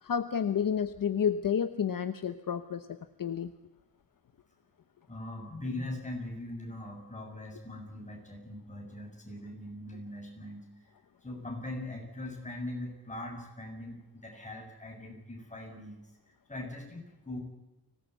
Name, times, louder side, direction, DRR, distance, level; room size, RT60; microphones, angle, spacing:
voice 1, 0.0-3.5, left 7 dB, 55° left, 10 dB, 1.0 m, -30 dB
voice 2, 5.1-10.7 11.2-16.0 16.5-17.4, left 1 dB, 20° left, 1 dB, 7.2 m, -41 dB
25.0 x 18.5 x 8.3 m, 0.98 s
wide cardioid pair, 175°, 38 cm